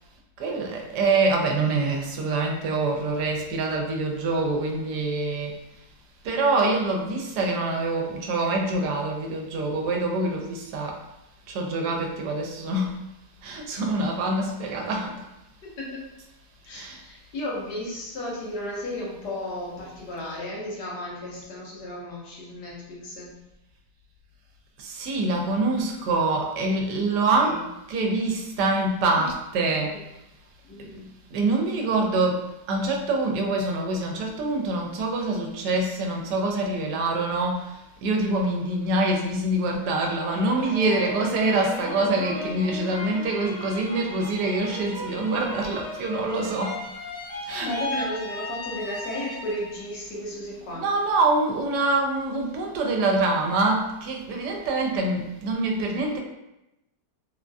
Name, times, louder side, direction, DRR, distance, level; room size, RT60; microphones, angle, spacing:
voice 1, 0.4-5.5 6.2-11.0 11.5-13.0 13.4-15.2 16.7-17.0 24.8-27.6 27.9-29.9 31.3-32.4 32.7-37.6 38.0-46.7 47.5-47.7 50.8-56.2, right 2 dB, 85° right, 2 dB, 1.2 m, -25 dB
voice 2, 15.6-16.0 16.6-23.3 27.4-27.6 29.2-29.3 29.9-30.0 30.6-31.1 47.6-50.8, left 1 dB, 85° left, -4 dB, 1.5 m, -34 dB
sound 1, 40.1-49.9 50.3-51.0, left 2 dB, 55° left, 0.8 m, -36 dB
3.5 x 2.3 x 2.5 m, 0.91 s
omnidirectional pair, 1.7 m